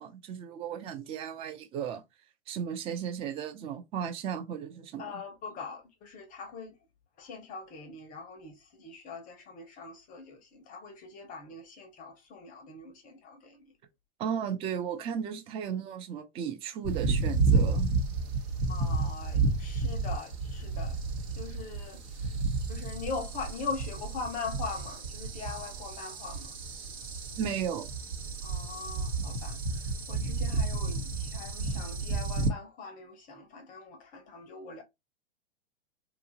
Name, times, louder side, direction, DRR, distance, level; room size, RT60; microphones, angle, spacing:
voice 1, 0.0-2.0 2.5-5.2 14.2-17.9 27.4-27.9, right 8 dB, 20° right, 0.3 m, -35 dB
voice 2, 5.0-6.8 7.2-13.6 18.7-21.0 21.4-22.4 22.7-26.5 28.4-34.8, left 4 dB, 25° left, 0.6 m, -41 dB
sound 1, 16.8-32.5, right 3 dB, 70° right, 1.0 m, -31 dB
2.8 x 2.4 x 2.7 m
hypercardioid pair, 110°, 33 cm